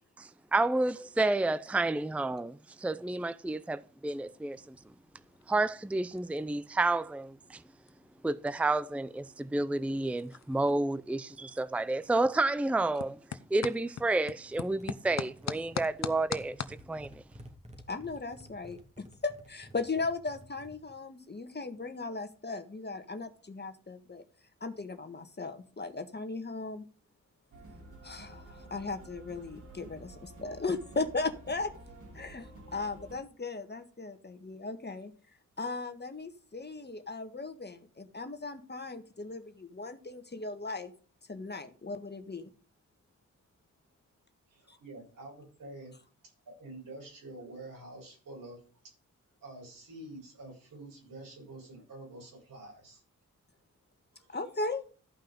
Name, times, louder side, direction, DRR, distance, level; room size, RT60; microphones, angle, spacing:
voice 1, 0.2-4.8 5.5-7.6 8.2-13.2 13.5-17.2, right 2 dB, 5° right, 0.5 m, -30 dB
sound 1, 4.1-16.8, left 7 dB, 55° left, 0.9 m, -44 dB
sound 2, 14.5-20.9, equal, 20° right, 2.3 m, -53 dB
voice 2, 17.9-18.8 19.2-24.2 24.6-26.8 28.0-28.3 28.7-30.1 30.4-31.7 32.2-32.4 32.7-35.1 35.6-39.4 39.7-40.9 41.3-42.4 54.3-54.8, left 3 dB, 30° left, 1.6 m, -37 dB
sound 3, 27.5-33.1, right 1 dB, 70° right, 4.3 m, -50 dB
voice 3, 44.5-46.0 46.6-48.9 49.4-53.0 54.1-54.4, right 2 dB, 90° right, 6.9 m, -48 dB
14.0 x 5.6 x 5.3 m
cardioid pair, 60°, 32 cm